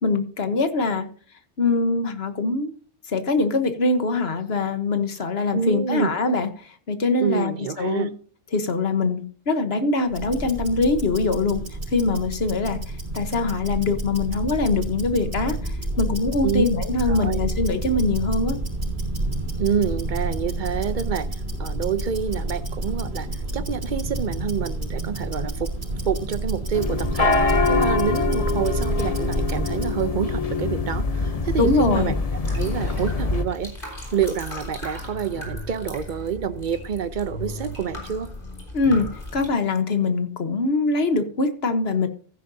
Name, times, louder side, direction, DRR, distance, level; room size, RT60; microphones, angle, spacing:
voice 1, 0.0-1.1 1.6-2.7 3.1-8.1 8.5-11.6 11.9-18.6 31.6-32.1 38.7-42.1, left 3 dB, 80° left, 9 dB, 1.5 m, -23 dB
voice 2, 5.5-6.1 7.2-8.1 16.4-16.7 17.1-17.4 19.6-23.3 23.5-25.7 26.0-32.2 32.5-38.3, right 7 dB, 55° right, 14 dB, 0.8 m, -27 dB
Tick-tock, 10.1-30.0, right 1 dB, 85° right, 4.4 m, -29 dB
sound 1, 26.7-33.4, left 4 dB, 40° left, 1.0 m, -24 dB
sound 2, 32.4-39.5, left 1 dB, 60° left, 3.9 m, -36 dB
15.0 x 10.0 x 2.8 m, 0.43 s
omnidirectional pair, 1.0 m